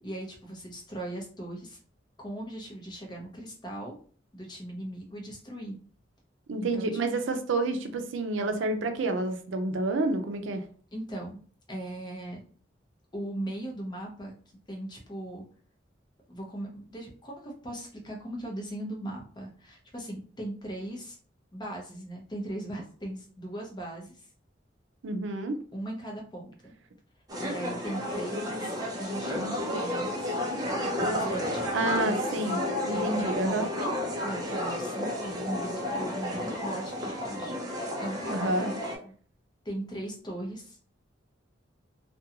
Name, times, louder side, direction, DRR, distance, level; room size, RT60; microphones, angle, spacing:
voice 1, 0.0-1.8 2.2-3.9 4.3-5.7 6.6-6.9 10.9-11.4 11.7-12.4 13.1-14.3 14.7-15.4 16.3-21.2 21.5-24.3 25.7-26.7 27.4-30.4 31.0-32.4 32.9-38.7 39.0-39.1 39.6-40.9, right 1 dB, 25° left, 0 dB, 0.6 m, -39 dB
voice 2, 6.5-10.6 25.0-25.6 31.7-33.7 38.3-38.7, right 2 dB, 80° right, 6 dB, 0.4 m, -29 dB
sound 1, 27.3-39.0, left 1 dB, 20° right, 0.6 m, -32 dB
2.5 x 2.2 x 2.7 m, 0.43 s
head